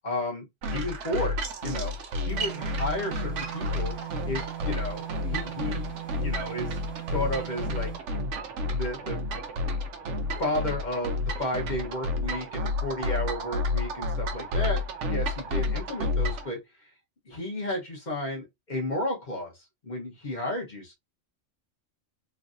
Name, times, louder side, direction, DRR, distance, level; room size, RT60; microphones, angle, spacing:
voice 1, 0.0-3.9 4.3-5.9 6.2-6.8 7.1-7.9 8.7-9.2 10.0-10.1 10.4-16.6 17.3-19.5 19.8-20.9, left 1 dB, 40° left, 1.2 m, -33 dB
sound 1, 0.6-16.5, left 2 dB, 70° right, 0.9 m, -31 dB
sound 2, 2.3-8.1, right 14 dB, 25° right, 1.0 m, -40 dB
3.2 x 2.5 x 2.5 m
omnidirectional pair, 1.3 m